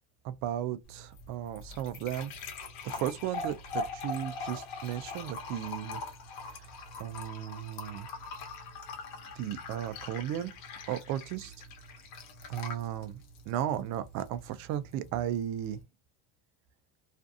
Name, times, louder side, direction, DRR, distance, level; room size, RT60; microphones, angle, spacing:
voice 1, 0.2-2.3 2.8-6.0 7.0-8.1 9.4-10.5 10.9-11.5 12.5-15.8, right 11 dB, 50° right, 0.5 m, -35 dB
sound 1, 0.8-15.8, left 3 dB, 55° left, 1.0 m, -43 dB
2.5 x 2.5 x 2.4 m
supercardioid pair, 130°, 36 cm